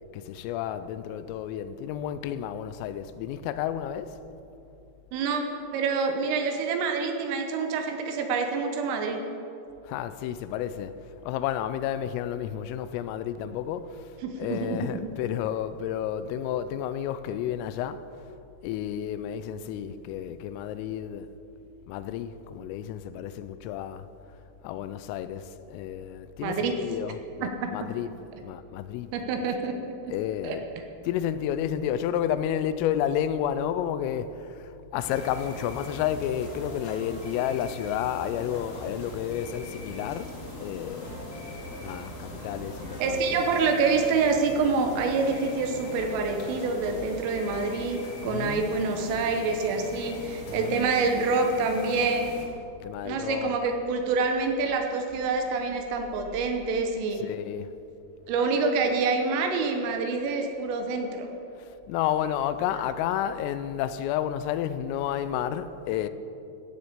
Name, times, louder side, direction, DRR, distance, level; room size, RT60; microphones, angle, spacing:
voice 1, 0.1-4.2 9.8-18.0 18.6-21.3 21.9-24.1 24.6-29.1 30.1-30.7 31.0-41.4 41.8-43.5 48.2-48.7 50.5-50.9 52.8-53.6 57.1-57.7 61.6-66.1, left 10 dB, 85° left, 3.2 m, -31 dB
voice 2, 5.1-5.5 5.7-9.2 14.2-15.0 26.4-26.8 27.4-27.9 29.1-29.7 30.0-30.1 30.4-30.6 43.0-52.3 53.1-57.2 58.3-61.3, right 4 dB, 80° right, 3.5 m, -27 dB
sound 1, 35.0-52.4, left 1 dB, 35° left, 3.1 m, -41 dB
16.5 x 7.0 x 7.9 m
omnidirectional pair, 5.9 m